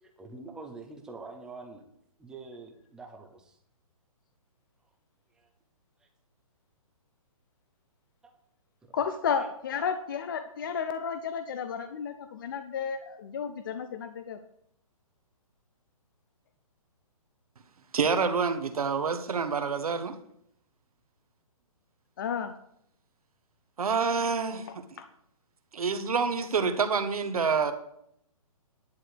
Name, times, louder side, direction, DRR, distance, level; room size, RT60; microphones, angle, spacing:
voice 1, 0.0-1.8 2.2-3.6 5.3-5.5 6.0-6.1 8.2-8.3 8.9-9.0 9.4-9.5 9.7-9.9, right 3 dB, 5° right, 3 dB, 0.6 m, -46 dB
voice 2, 8.9-14.4 22.2-22.5 25.0-25.1, left 6 dB, 35° left, 9 dB, 0.6 m, -32 dB
voice 3, 17.9-20.2 23.8-24.8 25.7-27.7, right 5 dB, 80° right, 8 dB, 1.5 m, -27 dB
10.5 x 4.9 x 8.0 m, 0.72 s
hypercardioid pair, 165°, 19 cm